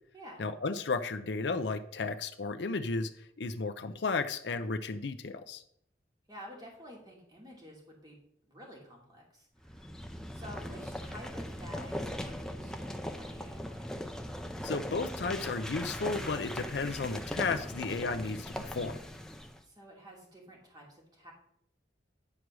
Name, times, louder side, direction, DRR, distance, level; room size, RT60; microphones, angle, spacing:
voice 1, 0.4-5.6 14.6-19.0, left 4 dB, 75° left, 7 dB, 0.6 m, -34 dB
voice 2, 6.3-8.2 8.5-9.9 10.3-13.9 19.6-21.3, equal, 20° right, -2 dB, 2.5 m, -50 dB
sound 1, 9.6-19.6, equal, 5° left, 0.6 m, -39 dB
9.8 x 4.7 x 6.2 m, 0.69 s
head